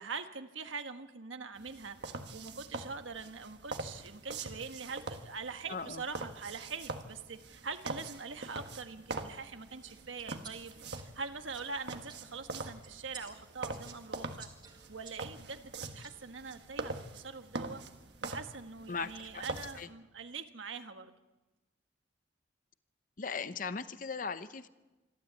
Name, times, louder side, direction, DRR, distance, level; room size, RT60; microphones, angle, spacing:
voice 1, 0.0-14.5 14.9-17.8 18.2-21.1, right 4 dB, 85° right, 7 dB, 1.5 m, -43 dB
sound 1, 1.6-19.9, right 3 dB, 60° right, 1.5 m, -44 dB
voice 2, 5.7-6.0 18.9-19.4 19.8-19.9 23.2-24.7, left 5 dB, 45° left, 13 dB, 0.8 m, -38 dB
sound 2, 9.7-16.6, right 5 dB, 25° right, 2.1 m, -56 dB
26.5 x 13.0 x 8.2 m, 1.1 s
head